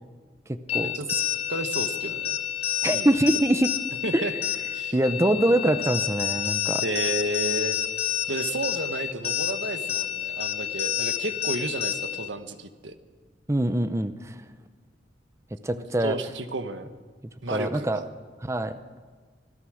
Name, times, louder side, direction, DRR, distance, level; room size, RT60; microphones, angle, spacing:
voice 1, 0.5-0.9 2.8-3.7 4.1-4.3 4.9-6.8 13.5-14.3 15.6-16.2 17.5-18.0 18.4-18.7, right 1 dB, 15° right, 11 dB, 0.7 m, -24 dB
sound 1, 0.7-12.3, left 10 dB, 35° left, 1.3 m, -29 dB
voice 2, 1.5-2.4 2.9-3.1 4.0-4.3 4.7-5.0 6.8-7.8 8.3-13.0 15.7-16.9 17.4-18.0, right 2 dB, 85° right, 9 dB, 1.5 m, -32 dB
25.0 x 16.5 x 6.4 m, 1.5 s
head